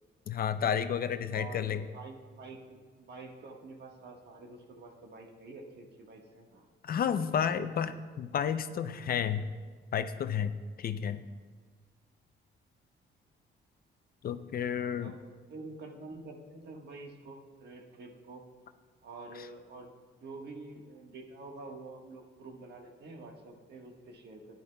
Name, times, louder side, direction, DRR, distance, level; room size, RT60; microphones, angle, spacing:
voice 1, 0.3-1.8 6.8-9.5 9.9-10.5 10.8-11.2 14.2-15.1, left 8 dB, 50° left, 11 dB, 0.5 m, -31 dB
voice 2, 1.3-6.7 7.0-7.9 15.0-15.2 15.5-18.4 19.0-19.9 20.2-24.6, right 3 dB, 60° right, 2 dB, 1.4 m, -48 dB
13.5 x 10.0 x 2.2 m, 1.5 s
cardioid pair, 90°, 20 cm